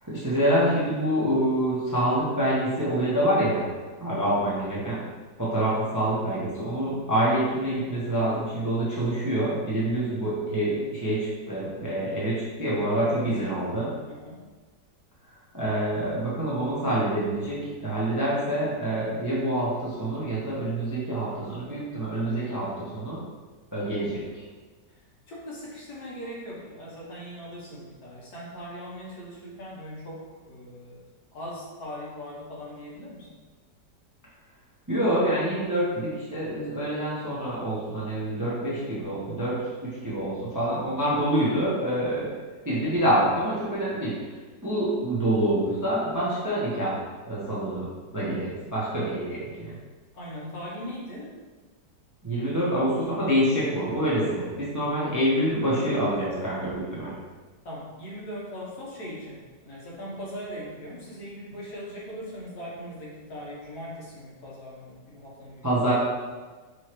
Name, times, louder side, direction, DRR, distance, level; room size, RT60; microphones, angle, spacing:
voice 1, 0.0-3.7 4.0-5.0 5.4-13.9 15.5-23.2 23.7-24.4 34.9-42.3 42.6-44.2 44.6-47.0 47.2-47.9 48.1-49.7 52.2-57.1 65.6-65.9, right 1 dB, 15° right, -8 dB, 0.7 m, -26 dB
voice 2, 13.0-14.4 25.3-31.0 31.3-33.4 50.1-51.3 57.6-65.7, equal, 65° left, -5 dB, 1.5 m, -40 dB
5.4 x 3.1 x 3.0 m, 1.4 s
omnidirectional pair, 1.8 m